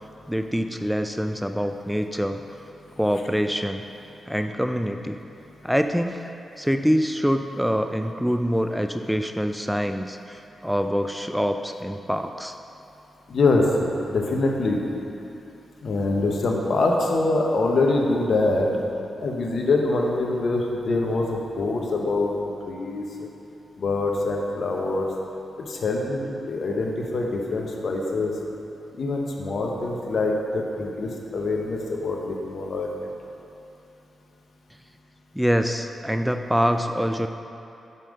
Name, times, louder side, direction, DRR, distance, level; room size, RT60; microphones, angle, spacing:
voice 1, 0.3-2.4 3.0-3.8 4.3-5.2 5.6-6.2 6.6-12.5 35.3-37.3, equal, ahead, 7 dB, 0.4 m, -25 dB
voice 2, 13.3-13.6 14.0-14.8 15.8-18.7 19.2-22.3 22.7-23.0 23.8-25.0 25.7-28.3 29.0-32.9, left 2 dB, 65° left, 0 dB, 1.0 m, -24 dB
5.6 x 5.4 x 6.3 m, 2.9 s
cardioid pair, 55°, 0 cm